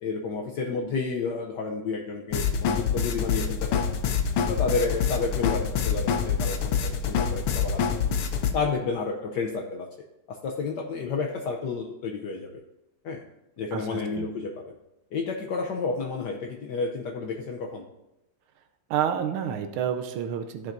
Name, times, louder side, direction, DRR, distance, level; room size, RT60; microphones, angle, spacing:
voice 1, 0.0-3.9 4.3-6.8 7.1-7.9 8.5-9.9 10.3-12.6 13.0-13.2 13.6-14.6 15.1-17.8, left 4 dB, 65° left, 1 dB, 1.1 m, -31 dB
sound 1, 2.3-8.5, left 6 dB, 85° left, 1.6 m, -26 dB
voice 2, 13.7-14.3 18.9-20.7, right 9 dB, 90° right, 6 dB, 1.5 m, -29 dB
14.5 x 5.8 x 2.6 m, 0.92 s
omnidirectional pair, 2.3 m